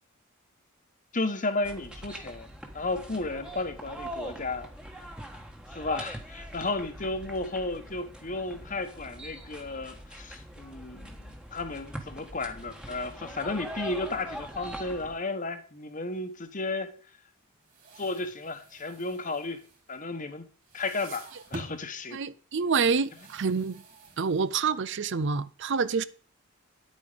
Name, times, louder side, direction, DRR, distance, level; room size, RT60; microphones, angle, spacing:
voice 1, 1.1-2.5 2.7-4.7 5.7-16.9 18.0-19.6 19.9-20.4 20.7-22.2, left 3 dB, 35° left, 1.3 m, -33 dB
sound 1, 1.6-15.2, equal, 5° right, 1.3 m, -42 dB
sound 2, 17.5-20.3 20.6-21.9 22.9-24.8, right 2 dB, 35° right, 2.9 m, -47 dB
voice 2, 22.1-23.8 24.2-26.0, right 5 dB, 55° right, 0.5 m, -27 dB
10.5 x 8.6 x 5.1 m
head